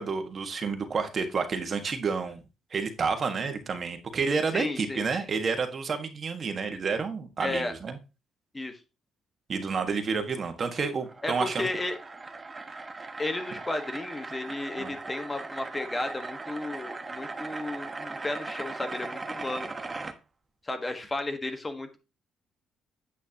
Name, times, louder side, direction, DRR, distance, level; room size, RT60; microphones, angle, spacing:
voice 1, 0.0-2.4 2.7-8.0 9.5-11.7 14.8-14.9, right 5 dB, 45° right, 7 dB, 1.6 m, -30 dB
voice 2, 4.5-5.0 7.4-7.7 8.5-8.8 11.2-11.9 13.2-19.7 20.6-22.0, left 2 dB, 20° left, 8 dB, 1.4 m, -33 dB
sound 1, 10.7-20.1, right 3 dB, 25° right, 1.1 m, -39 dB
9.3 x 8.2 x 2.9 m, 0.29 s
cardioid pair, 95°, 0 cm